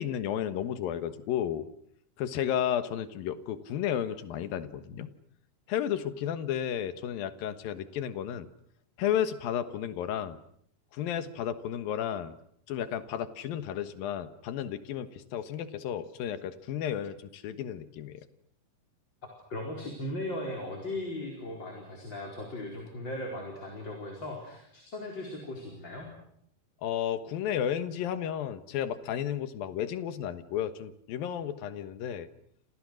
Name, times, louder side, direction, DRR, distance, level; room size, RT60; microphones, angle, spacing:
voice 1, 0.0-1.7 2.2-5.1 5.7-8.5 9.0-10.4 10.9-12.4 12.7-18.3 26.8-32.3, left 10 dB, 80° left, 11 dB, 3.2 m, -33 dB
voice 2, 19.5-26.1, left 1 dB, 30° left, 0 dB, 4.9 m, -38 dB
29.5 x 26.5 x 6.4 m, 0.71 s
omnidirectional pair, 4.1 m